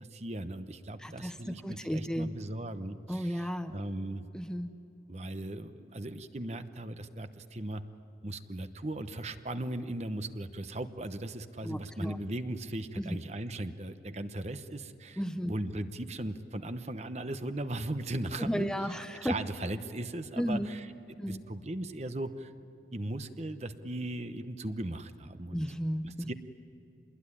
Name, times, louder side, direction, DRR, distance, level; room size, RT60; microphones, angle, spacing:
voice 1, 0.0-4.2 5.1-7.8 8.2-15.2 15.5-18.7 19.2-22.5 22.9-25.6 26.0-26.3, right 1 dB, 40° right, 10 dB, 1.0 m, -38 dB
voice 2, 1.0-2.3 3.1-3.8 4.3-4.7 11.6-12.2 13.0-13.2 15.2-15.5 18.4-19.3 20.4-20.7 21.2-21.4 25.5-26.3, equal, 5° left, 8 dB, 0.7 m, -33 dB
27.0 x 21.0 x 9.9 m, 2.7 s
head